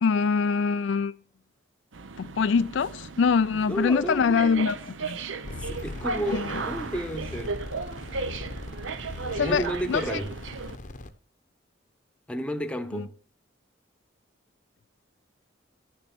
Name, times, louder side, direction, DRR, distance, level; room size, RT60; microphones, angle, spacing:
voice 1, 0.0-1.1 2.2-5.2 6.3-6.6 9.3-10.2 12.9-13.1, left 5 dB, 70° left, 0.4 m, -24 dB
sound 1, 1.9-10.8, right 4 dB, 75° right, 0.7 m, -36 dB
voice 2, 3.5-4.8 5.5-7.6 9.4-10.3 12.3-13.1, equal, 5° left, 0.9 m, -32 dB
sound 2, 5.4-11.1, left 2 dB, 40° left, 0.8 m, -39 dB
11.0 x 7.1 x 6.0 m
head